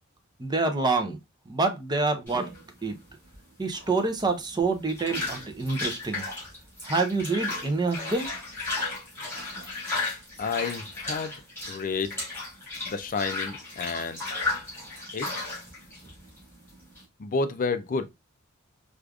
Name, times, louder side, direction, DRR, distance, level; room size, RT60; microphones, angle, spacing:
voice 1, 0.4-1.2 1.5-2.5 2.8-3.0 3.6-6.3 6.8-8.3, right 3 dB, 20° right, 0.5 m, -27 dB
sound 1, 2.3-17.0, left 3 dB, 10° left, 2.5 m, -35 dB
voice 2, 10.4-11.3 11.7-12.2 12.9-14.2 15.1-15.3 17.2-18.1, left 4 dB, 40° left, 0.4 m, -30 dB
4.8 x 2.4 x 2.3 m
head